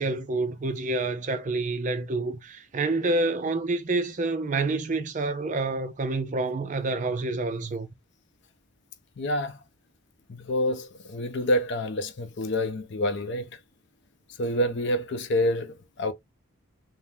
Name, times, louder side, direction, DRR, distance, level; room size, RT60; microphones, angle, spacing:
voice 1, 0.0-7.9, right 2 dB, 35° right, 0.4 m, -28 dB
voice 2, 9.2-9.6 10.3-13.5 14.4-15.7 16.0-16.1, left 1 dB, 55° left, 0.5 m, -27 dB
3.5 x 2.1 x 2.6 m
head